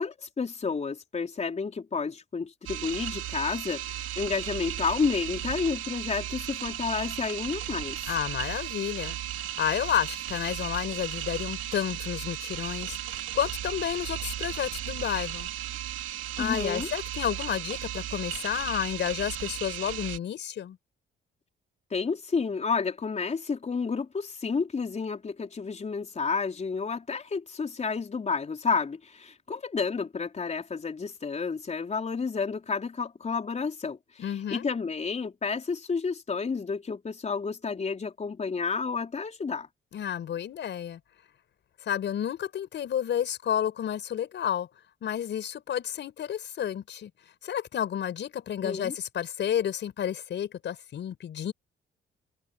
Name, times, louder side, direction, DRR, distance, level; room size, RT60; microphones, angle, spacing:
voice 1, 0.0-8.1 16.4-16.9 21.9-39.7 48.6-48.9, left 5 dB, 35° left, 4.8 m, -31 dB
sound 1, 2.7-20.2, right 12 dB, 85° right, 2.6 m, -35 dB
voice 2, 8.1-9.2 9.6-15.5 16.4-20.8 34.2-34.7 39.9-41.0 41.8-44.7 45.0-47.1 47.4-51.5, left 9 dB, 65° left, 5.5 m, -31 dB
cardioid pair, 90°, 20 cm